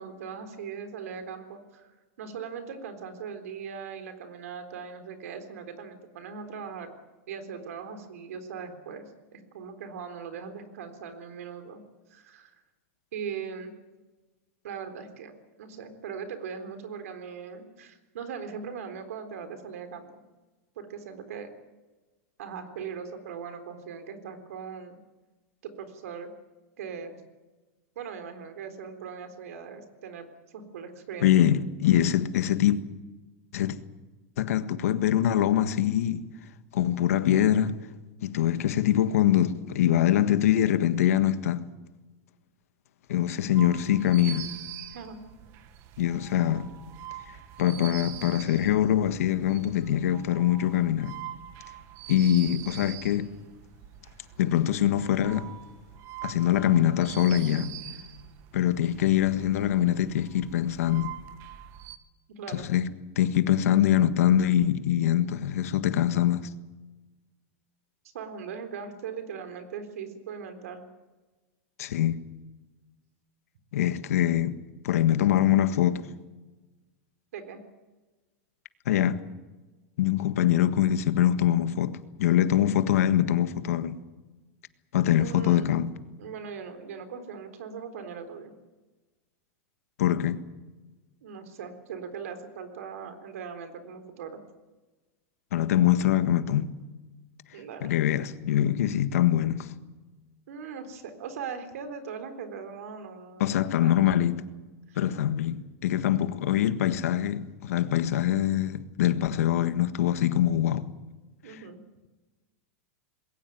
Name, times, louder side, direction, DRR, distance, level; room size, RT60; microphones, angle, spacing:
voice 1, 0.0-1.9 2.2-6.9 7.3-9.0 9.3-11.8 12.1-12.5 13.1-13.7 14.6-20.1 20.8-21.5 22.4-25.0 25.6-26.3 26.8-27.2 28.0-31.3 44.9-45.2 62.4-62.7 68.1-70.9 77.3-77.6 85.2-85.7 86.2-88.5 91.2-94.4 97.5-98.0 100.5-104.0 104.9-105.0 105.8-105.9 111.4-111.8, right 6 dB, 85° right, 3.8 m, -40 dB
voice 2, 31.2-32.8 33.5-33.8 34.4-36.3 36.7-37.8 38.2-41.7 43.1-44.5 46.0-46.7 47.6-51.2 52.1-53.3 54.4-55.5 56.2-57.7 58.5-61.2 62.5-66.5 71.8-72.2 73.7-74.6 74.8-76.1 78.8-79.2 80.0-84.0 84.9-85.9 90.0-90.4 95.5-96.7 97.8-99.7 103.4-104.4 104.9-110.9, left 11 dB, 90° left, 1.5 m, -24 dB
sound 1, 43.5-62.0, right 12 dB, 35° right, 1.3 m, -44 dB
21.0 x 17.5 x 9.3 m
supercardioid pair, 170°, 8 cm